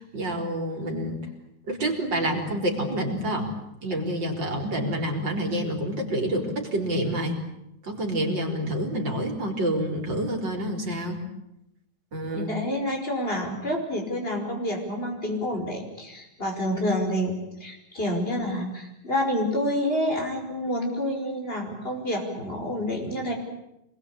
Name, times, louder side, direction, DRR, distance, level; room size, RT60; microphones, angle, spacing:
voice 1, 0.1-1.2 1.7-3.5 3.8-7.4 7.8-11.2 12.1-12.5, right 1 dB, 60° right, 3 dB, 4.8 m, -28 dB
voice 2, 12.3-17.4 17.6-23.3, left 1 dB, 25° left, 2 dB, 5.6 m, -28 dB
25.5 x 21.0 x 8.8 m, 0.85 s
omnidirectional pair, 2.2 m